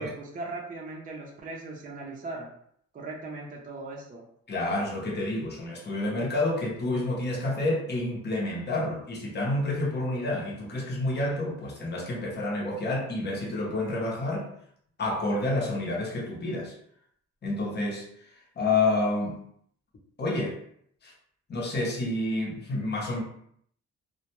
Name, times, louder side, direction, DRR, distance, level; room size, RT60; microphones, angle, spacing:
voice 1, 0.0-2.5 2.9-4.2, right 3 dB, 30° right, -2 dB, 0.5 m, -38 dB
voice 2, 4.5-14.5 15.0-16.8 17.4-18.0 18.6-19.4 20.2-20.6 21.0-21.1 21.5-23.2, left 2 dB, 35° left, -2 dB, 0.7 m, -29 dB
2.2 x 2.1 x 2.9 m, 0.67 s
cardioid pair, 110°, 30 cm